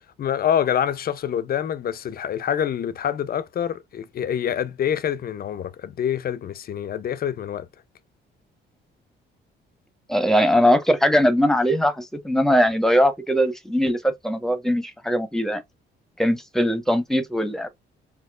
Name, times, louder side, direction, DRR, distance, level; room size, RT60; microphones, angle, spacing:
voice 1, 0.2-7.7, left 9 dB, 50° left, 0.5 m, -26 dB
voice 2, 10.1-15.6 16.2-17.7, equal, ahead, 1.0 m, -20 dB
4.3 x 2.8 x 2.4 m
cardioid pair, 90°, 20 cm